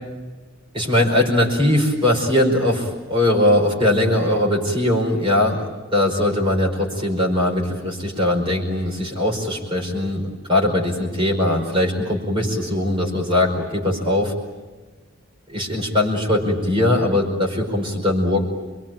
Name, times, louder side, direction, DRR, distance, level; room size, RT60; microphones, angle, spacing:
voice 1, 0.7-5.6 5.9-10.2 10.5-14.3 15.5-18.4, left 1 dB, 25° right, -1 dB, 5.0 m, -20 dB
27.0 x 23.0 x 9.0 m, 1.3 s
head